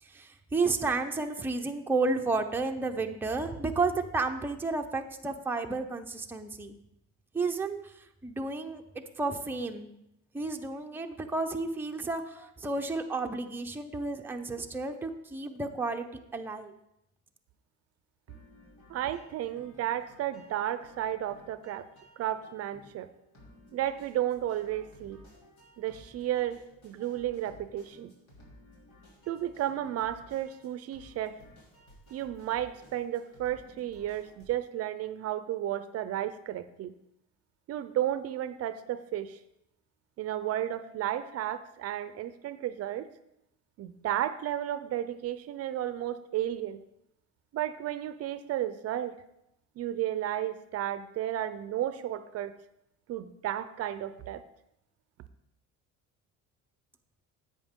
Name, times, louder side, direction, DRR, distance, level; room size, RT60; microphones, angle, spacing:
voice 1, 0.0-6.7 7.3-8.8 9.2-9.9 10.3-16.1 16.3-16.7, right 3 dB, 5° right, 3 dB, 0.6 m, -32 dB
sound 1, 18.3-34.5, left 1 dB, 90° left, 3.3 m, -56 dB
voice 2, 18.9-21.9 22.2-23.1 23.7-25.2 25.8-28.1 29.3-31.4 32.1-36.9 37.7-39.4 40.2-43.1 43.8-46.8 47.5-49.2 49.8-52.5 53.1-54.4, right 12 dB, 50° right, 13 dB, 0.5 m, -33 dB
10.5 x 7.9 x 3.6 m, 0.82 s
cardioid pair, 130°, 31 cm